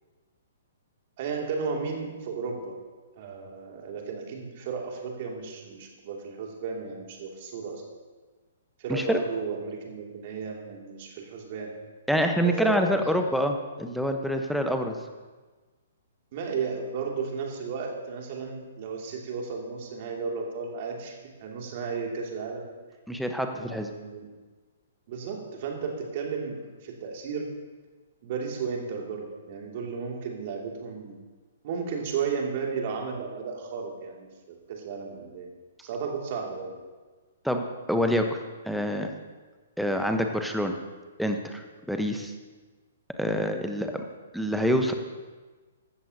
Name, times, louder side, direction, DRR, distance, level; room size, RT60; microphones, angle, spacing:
voice 1, 1.2-2.8 3.2-7.8 8.8-11.7 12.4-13.3 16.3-22.6 23.5-24.3 25.1-27.5 28.2-31.2 31.6-35.5 35.8-36.8, right 5 dB, 45° right, 0 dB, 2.6 m, -34 dB
voice 2, 12.1-15.0 23.1-23.9 37.4-38.4 38.6-39.1 39.8-40.7 41.2-42.3 43.2-43.9 44.3-44.9, equal, ahead, 5 dB, 1.1 m, -26 dB
15.0 x 13.0 x 2.9 m, 1.3 s
figure-of-eight pair, 120°, 0 cm